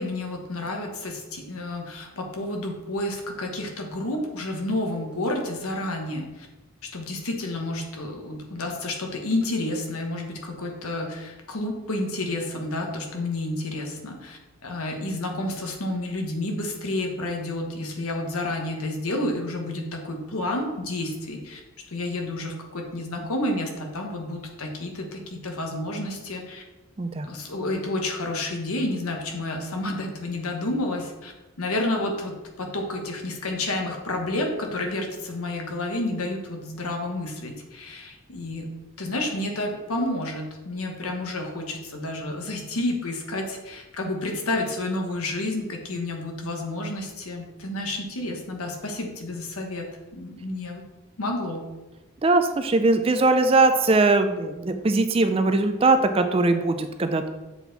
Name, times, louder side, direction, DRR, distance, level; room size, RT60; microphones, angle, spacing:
voice 1, 0.0-6.5 6.9-21.6 21.9-26.6 27.2-31.3 31.6-38.7 39.0-49.9 50.1-50.8 51.2-51.6, left 1 dB, 80° left, 2 dB, 1.2 m, -30 dB
voice 2, 52.2-57.3, right 3 dB, 25° right, 8 dB, 0.4 m, -21 dB
7.3 x 4.4 x 4.0 m, 1.1 s
head